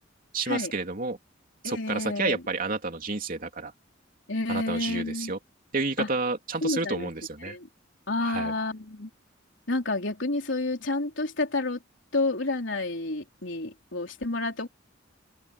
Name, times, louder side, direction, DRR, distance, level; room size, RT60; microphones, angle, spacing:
voice 1, 0.3-1.2 1.6-3.7 4.5-5.4 5.7-7.6 8.2-8.5, right 3 dB, 45° right, 3.2 m, -30 dB
voice 2, 1.6-2.4 4.3-5.3 6.0-6.1 6.6-7.1 7.4-7.7 8.1-9.1 9.7-11.8 12.1-14.7, left 2 dB, 70° left, 3.9 m, -29 dB
open air
head